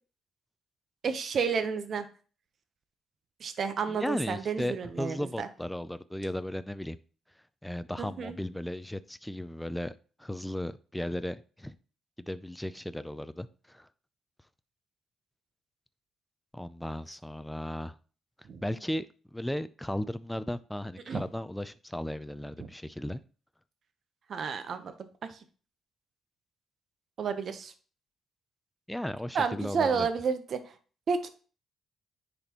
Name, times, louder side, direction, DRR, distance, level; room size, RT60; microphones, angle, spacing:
voice 1, 1.0-2.0 3.4-5.5 8.0-8.4 18.5-18.6 21.1-21.2 24.3-24.9 25.2-25.4 27.2-27.7 29.3-30.6 31.1-31.3, right 5 dB, 55° right, 9 dB, 0.9 m, -31 dB
voice 2, 3.9-7.0 7.6-9.9 10.2-11.7 12.3-13.9 16.5-18.0 18.6-19.1 19.3-23.2 28.9-30.1, left 1 dB, 5° left, 14 dB, 0.5 m, -35 dB
10.0 x 4.1 x 3.0 m, 0.39 s
cardioid pair, 90°, 0 cm